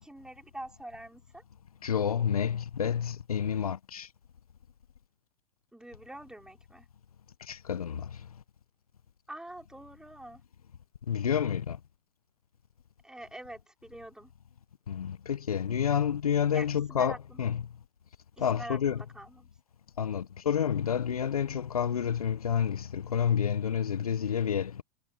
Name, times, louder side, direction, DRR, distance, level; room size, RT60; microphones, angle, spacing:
voice 1, 0.0-1.4 5.7-6.9 9.3-10.4 13.0-14.3 16.5-17.4 18.4-19.5, right 1 dB, 5° right, 4.1 m, -45 dB
voice 2, 1.8-4.1 7.5-8.2 11.1-11.8 14.9-17.6 18.4-19.0 20.0-24.8, left 8 dB, 80° left, 1.4 m, -29 dB
hypercardioid pair, 100°, 18 cm